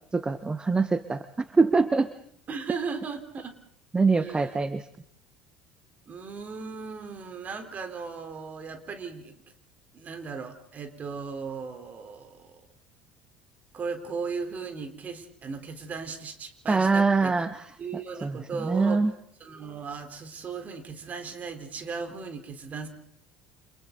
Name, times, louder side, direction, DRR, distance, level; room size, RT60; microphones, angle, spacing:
voice 1, 0.1-1.3 1.5-2.1 3.9-4.9 16.7-17.7 18.2-19.1, right 4 dB, 20° right, 12 dB, 1.3 m, -24 dB
voice 2, 2.5-3.6 4.2-4.5 6.1-9.3 9.9-12.6 13.7-17.3 17.8-19.0 19.4-22.9, right 5 dB, 35° right, 6 dB, 4.2 m, -37 dB
29.5 x 27.0 x 4.1 m, 0.67 s
figure-of-eight pair, 60°, 4 cm